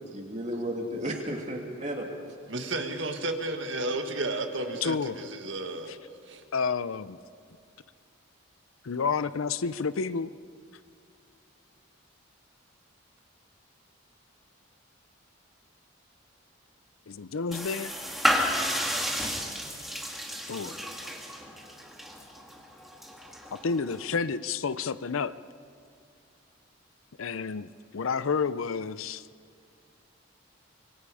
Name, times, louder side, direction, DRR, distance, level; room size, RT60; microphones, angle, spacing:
voice 1, 0.0-2.2, equal, 35° right, 1 dB, 2.7 m, -34 dB
voice 2, 2.5-5.9 6.2-6.4, right 2 dB, 65° right, 5 dB, 1.7 m, -32 dB
voice 3, 4.8-5.3 6.5-7.2 8.8-10.3 17.1-17.9 19.2-19.3 20.5-20.7 23.5-25.3 27.2-29.2, left 5 dB, 90° left, 15 dB, 0.6 m, -30 dB
sound 1, 17.5-24.2, equal, ahead, 1.8 m, -32 dB
25.5 x 23.5 x 5.0 m, 2.2 s
head